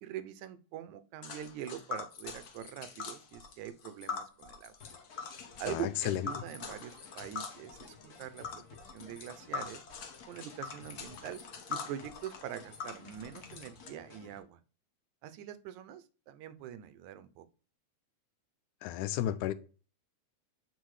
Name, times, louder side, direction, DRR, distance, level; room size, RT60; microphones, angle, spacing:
voice 1, 0.0-4.7 5.6-9.8 10.3-11.4 11.7-14.6 15.2-17.5, right 10 dB, 80° right, 2.0 m, -43 dB
Tick, 1.2-13.9, left 5 dB, 70° left, 0.9 m, -43 dB
sound 1, 4.8-14.4, left 5 dB, 45° left, 1.2 m, -55 dB
voice 2, 5.7-6.2 18.8-19.5, left 12 dB, 85° left, 2.0 m, -32 dB
8.2 x 4.5 x 4.8 m
omnidirectional pair, 3.4 m